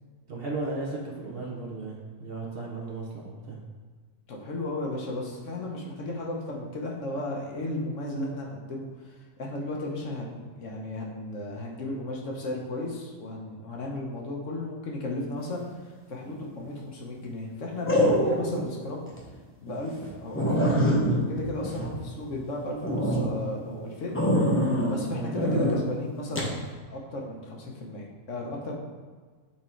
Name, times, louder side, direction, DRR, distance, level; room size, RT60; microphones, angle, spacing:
voice 1, 0.3-3.6 25.0-25.3, right 3 dB, 45° right, -2 dB, 0.9 m, -35 dB
voice 2, 4.3-19.1 19.6-24.2 24.6-28.8, left 2 dB, 60° left, -1 dB, 1.1 m, -35 dB
sound 1, 16.3-16.7 17.9-18.6 19.1-19.2 19.7-19.8 20.0-20.1 20.4-22.4 22.8-23.2 24.2-25.0 25.4-25.8 26.4-26.5, equal, 10° left, 0.7 m, -24 dB
6.0 x 3.7 x 4.4 m, 1.5 s
omnidirectional pair, 1.6 m